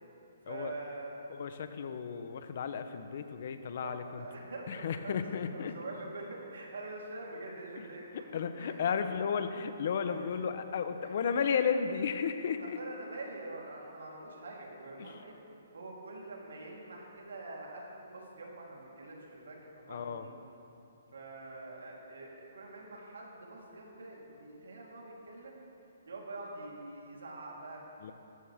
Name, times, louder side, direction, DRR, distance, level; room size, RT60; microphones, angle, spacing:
voice 1, 0.4-1.3 3.8-5.2 5.5-8.3 8.6-9.1 10.0-10.4 11.0-11.1 12.6-15.4 15.7-20.3 21.1-25.6 26.1-27.8, right 2 dB, 85° right, -3 dB, 3.8 m, -45 dB
voice 2, 1.3-4.3 4.7-5.7 7.8-7.9 8.1-12.8 15.0-15.2 19.9-20.3 28.0-28.1, left 6 dB, 55° left, 9 dB, 1.0 m, -34 dB
18.5 x 14.0 x 3.7 m, 2.8 s
hypercardioid pair, 155°, 0 cm